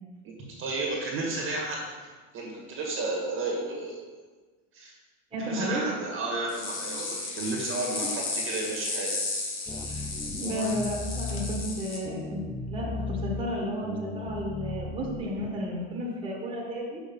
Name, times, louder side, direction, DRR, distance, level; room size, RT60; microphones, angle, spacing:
voice 1, 0.6-2.1 2.3-4.0 4.7-4.9 5.5-9.1, right 2 dB, 30° right, -2 dB, 1.9 m, -32 dB
voice 2, 5.3-5.8 9.8-10.0 10.4-12.4 12.7-17.0, equal, 15° right, -4 dB, 1.9 m, -32 dB
sound 1, 6.5-12.0, left 3 dB, 30° left, 1.5 m, -34 dB
sound 2, 9.7-11.6 12.0-13.4 13.8-15.4, left 2 dB, 10° left, 0.4 m, -36 dB
6.3 x 6.2 x 5.4 m, 1.4 s
supercardioid pair, 140°, 38 cm